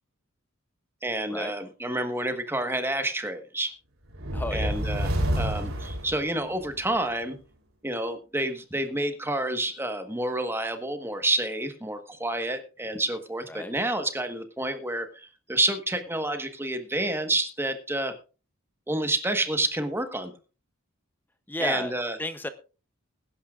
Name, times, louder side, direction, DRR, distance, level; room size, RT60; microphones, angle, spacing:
voice 1, 1.0-3.7 4.5-5.1 5.4-7.4 7.8-18.1 18.9-20.3 21.6-22.2, right 1 dB, 10° right, 7 dB, 1.4 m, -29 dB
sound 1, 4.1-6.9, equal, 70° right, 3.4 m, -29 dB
voice 2, 4.3-4.8 13.5-13.7 21.5-21.9 22.2-22.5, left 1 dB, 10° left, 10 dB, 0.7 m, -32 dB
21.5 x 11.5 x 2.5 m, 0.33 s
head